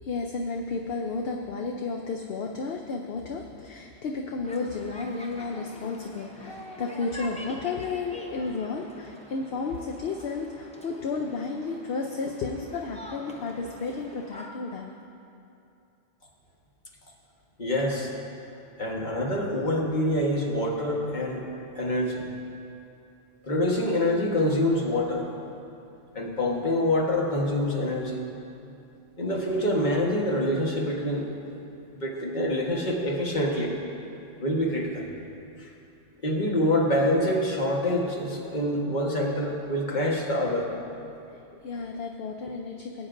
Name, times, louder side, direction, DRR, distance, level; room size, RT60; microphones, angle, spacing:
voice 1, 0.0-14.9 41.3-43.1, left 4 dB, 60° left, 2 dB, 0.8 m, -32 dB
sound 1, 4.4-14.5, equal, 5° left, 0.7 m, -46 dB
voice 2, 17.6-18.1 18.8-21.5 21.7-22.2 23.4-25.3 26.1-28.3 29.2-31.3 31.9-33.7 34.4-35.0 35.6-35.7 36.2-40.7, left 1 dB, 40° left, -1 dB, 1.4 m, -26 dB
19.5 x 9.0 x 2.6 m, 2.7 s
omnidirectional pair, 1.2 m